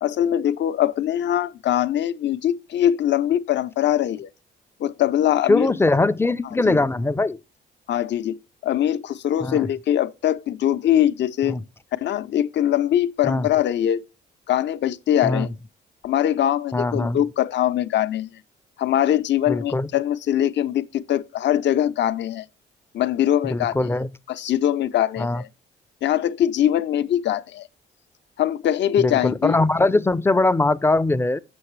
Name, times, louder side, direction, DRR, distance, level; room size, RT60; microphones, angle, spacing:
voice 1, 0.0-4.3 4.8-5.7 6.7-6.8 7.9-11.6 12.0-14.0 14.5-15.5 16.0-18.4 18.8-22.5 22.9-23.8 24.3-25.5 26.0-27.7 28.4-29.6, left 11 dB, 65° left, 0.6 m, -22 dB
voice 2, 5.5-7.4 9.4-9.7 11.4-11.6 13.2-13.5 15.2-15.5 16.7-17.2 19.5-19.9 23.5-24.1 25.2-25.4 29.0-31.4, left 2 dB, 10° left, 0.4 m, -21 dB
7.0 x 6.4 x 3.1 m
cardioid pair, 90°, 20 cm